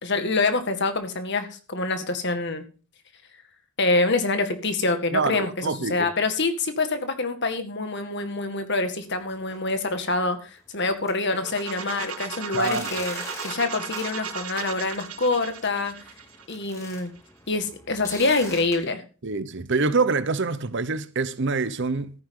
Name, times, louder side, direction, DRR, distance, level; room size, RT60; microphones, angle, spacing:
voice 1, 0.0-2.6 3.8-15.9 16.5-17.1 17.5-19.0, left 3 dB, 55° left, 1.9 m, -26 dB
voice 2, 5.1-6.1 12.5-12.9 19.2-22.1, right 4 dB, 55° right, 0.9 m, -25 dB
sound 1, 9.3-9.7 10.1-10.2 10.7-10.8 11.1-18.8, left 1 dB, 15° left, 2.7 m, -43 dB
sound 2, 11.4-17.2, right 6 dB, 80° right, 2.6 m, -36 dB
14.0 x 9.9 x 3.8 m
head